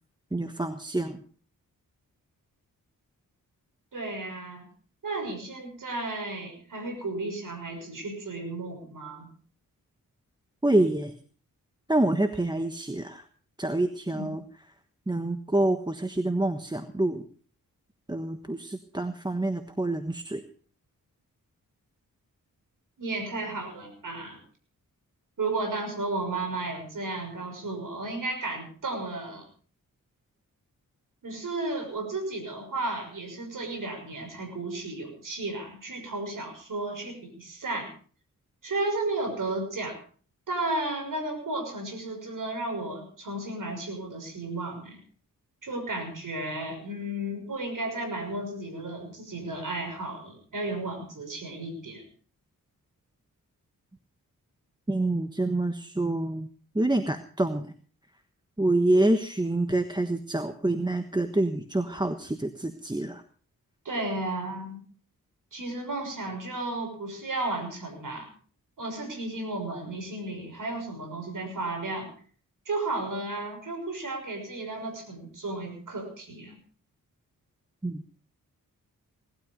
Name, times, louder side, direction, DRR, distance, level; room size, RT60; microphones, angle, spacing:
voice 1, 0.3-1.2 10.6-11.1 11.9-13.2 13.6-14.4 15.1-17.2 18.1-20.4 54.9-56.5 56.7-57.7 58.6-63.2 77.8-78.0, right 2 dB, 10° right, 8 dB, 1.3 m, -27 dB
voice 2, 3.9-4.7 5.0-9.3 14.1-14.3 23.0-24.4 25.4-29.5 31.2-37.9 38.6-40.0 40.5-45.0 45.6-52.1 63.8-64.8 65.5-68.3 68.8-72.1 72.7-76.6, right 2 dB, 65° right, 4 dB, 6.1 m, -33 dB
19.0 x 12.5 x 5.3 m, 0.43 s
cardioid pair, 70°, 34 cm